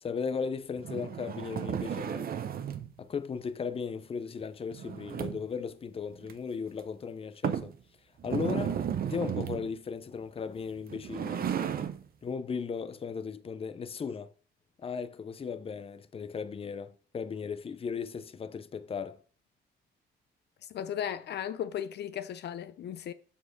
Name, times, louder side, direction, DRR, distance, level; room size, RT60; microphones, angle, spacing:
voice 1, 0.0-2.3 3.0-7.7 8.2-11.4 12.2-14.3 14.8-19.2, left 6 dB, 30° left, 0.7 m, -36 dB
sound 1, 0.8-2.9 4.7-5.6 6.2-6.3 6.8-6.9 7.4-7.8 8.2-9.7 10.8-12.0, right 8 dB, 55° right, 1.0 m, -34 dB
voice 2, 20.7-23.1, left 9 dB, 65° left, 0.7 m, -36 dB
7.5 x 6.3 x 6.6 m
cardioid pair, 105°, 19 cm